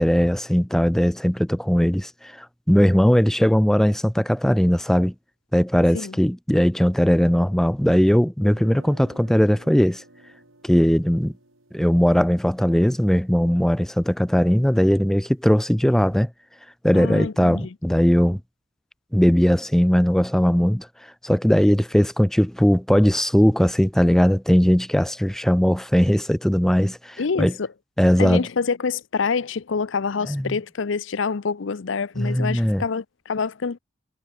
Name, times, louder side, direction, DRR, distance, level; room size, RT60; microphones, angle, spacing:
voice 1, 0.0-5.1 5.5-10.0 10.6-11.3 11.7-16.3 16.8-18.4 19.1-20.9 21.2-27.5 28.0-28.5 30.3-30.5 32.2-32.8, equal, ahead, 0.3 m, -19 dB
sound 1, 8.5-14.4, right 1 dB, 85° right, 4.0 m, -51 dB
voice 2, 16.9-17.7 27.2-27.7 28.2-33.8, left 5 dB, 70° left, 0.6 m, -26 dB
head